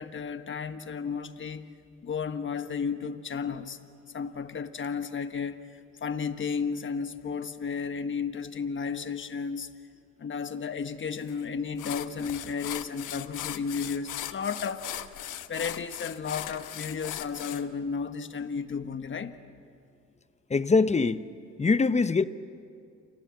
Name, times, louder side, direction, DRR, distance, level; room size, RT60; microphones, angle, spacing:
voice 1, 0.0-1.7 2.0-3.8 4.1-5.6 6.0-9.7 10.2-14.9 15.5-19.4, left 6 dB, 40° left, 1.4 m, -33 dB
sound 1, 11.3-11.4 11.8-17.6, left 13 dB, 85° left, 1.1 m, -38 dB
voice 2, 20.5-21.2 21.6-22.3, left 4 dB, 20° left, 0.9 m, -23 dB
29.0 x 25.0 x 7.5 m
cardioid pair, 90°, 30 cm